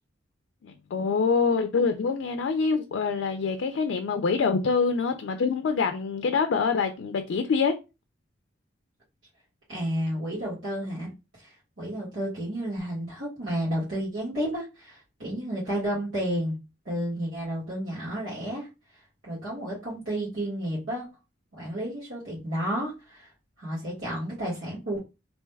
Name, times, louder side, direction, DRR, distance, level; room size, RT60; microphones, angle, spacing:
voice 1, 0.6-7.7, left 5 dB, 75° left, 0.3 m, -25 dB
voice 2, 9.7-11.1 11.4-16.5 16.8-18.7 19.2-21.1 21.5-23.3 23.6-25.0, equal, 90° right, 1.5 m, -31 dB
2.9 x 2.2 x 3.2 m
head